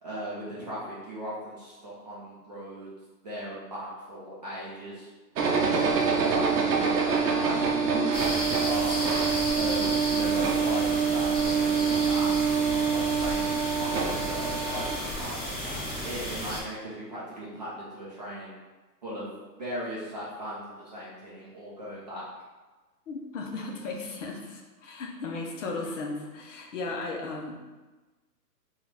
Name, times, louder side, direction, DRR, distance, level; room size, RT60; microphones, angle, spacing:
voice 1, 0.0-2.9 3.2-5.1 5.6-8.9 9.5-15.5 16.0-18.6 19.0-19.3 19.6-22.3, equal, 30° right, -8 dB, 0.4 m, -38 dB
sound 1, 5.4-15.0, right 6 dB, 65° right, 0.7 m, -26 dB
sound 2, 8.1-16.6, equal, 10° left, 0.7 m, -33 dB
voice 2, 23.1-27.6, left 3 dB, 50° left, 0 dB, 0.6 m, -36 dB
3.7 x 2.3 x 3.1 m, 1.2 s
hypercardioid pair, 140°, 50 cm